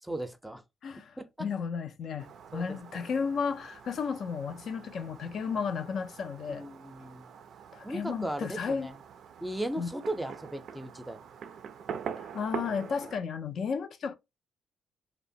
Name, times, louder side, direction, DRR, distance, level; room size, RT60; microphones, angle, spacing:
voice 1, 0.0-0.6 0.9-1.5 2.5-3.0 6.5-7.3 7.8-9.0 9.4-11.2, right 1 dB, 5° right, 0.5 m, -37 dB
voice 2, 0.8-6.6 7.7-8.9 9.8-9.9 12.2-14.1, left 6 dB, 60° left, 0.3 m, -33 dB
Fireworks, 2.2-13.1, right 7 dB, 70° right, 0.3 m, -44 dB
2.8 x 2.0 x 2.6 m
cardioid pair, 90°, 0 cm